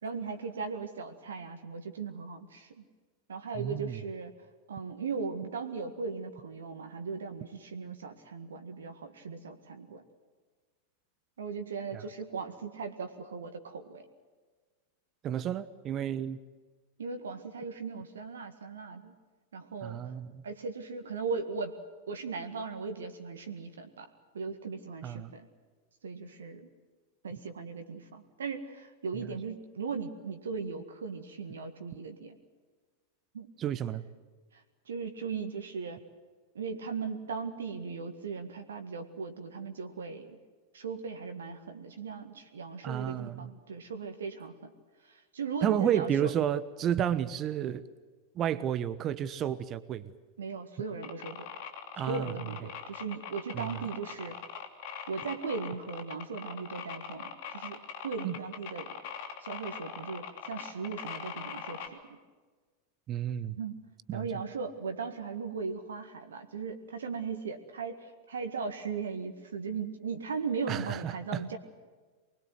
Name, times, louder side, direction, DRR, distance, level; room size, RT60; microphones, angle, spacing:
voice 1, 0.0-2.8 3.3-4.3 4.7-10.0 11.4-14.1 17.0-19.1 19.5-20.1 20.4-21.8 22.1-24.1 24.3-25.5 26.0-26.7 27.2-32.4 33.3-33.5 34.5-36.0 36.6-40.4 40.7-44.7 45.0-46.3 50.4-51.5 52.1-54.4 55.1-59.0 59.4-62.2 63.6-63.8 64.1-71.6, right 5 dB, 65° right, 7 dB, 1.9 m, -38 dB
voice 2, 3.6-4.0 11.9-12.0 15.2-16.4 19.8-20.4 25.0-25.3 33.6-34.0 42.8-43.5 45.6-47.8 48.3-50.1 52.0-52.4 53.5-53.8 58.2-58.3 63.1-63.6 64.1-64.3 70.7-71.4, right 10 dB, 30° right, 15 dB, 1.1 m, -31 dB
sound 1, 51.0-61.9, left 7 dB, 50° left, 3.0 m, -42 dB
24.5 x 21.5 x 7.9 m, 1.4 s
figure-of-eight pair, 90°, 0 cm